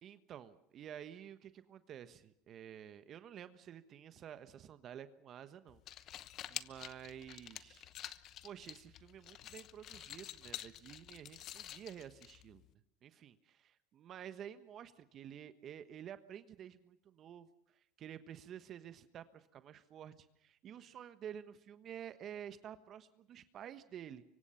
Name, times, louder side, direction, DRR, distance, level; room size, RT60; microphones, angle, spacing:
voice 1, 0.0-5.8 6.5-7.9 8.4-12.6 13.0-24.2, right 9 dB, 45° right, 11 dB, 1.3 m, -51 dB
sound 1, 5.7-12.7, left 12 dB, 50° left, 1.0 m, -49 dB
25.0 x 24.0 x 5.8 m, 0.75 s
hypercardioid pair, 95°, 0 cm